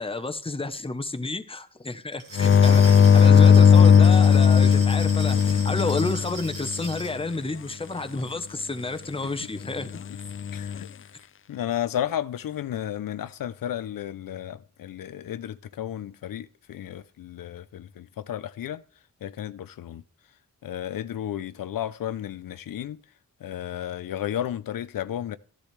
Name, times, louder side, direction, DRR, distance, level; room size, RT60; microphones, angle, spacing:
voice 1, 0.0-10.0, left 3 dB, 15° left, 0.9 m, -31 dB
Glass, 2.1-7.2, right 3 dB, 85° right, 2.0 m, -41 dB
sound 1, 2.4-7.0 10.3-10.8, left 7 dB, 40° left, 0.4 m, -17 dB
voice 2, 10.5-10.9 11.5-18.8 19.2-20.0 20.6-23.0 23.4-25.4, left 11 dB, 90° left, 0.6 m, -33 dB
14.0 x 10.5 x 3.3 m
wide cardioid pair, 90°, 33 cm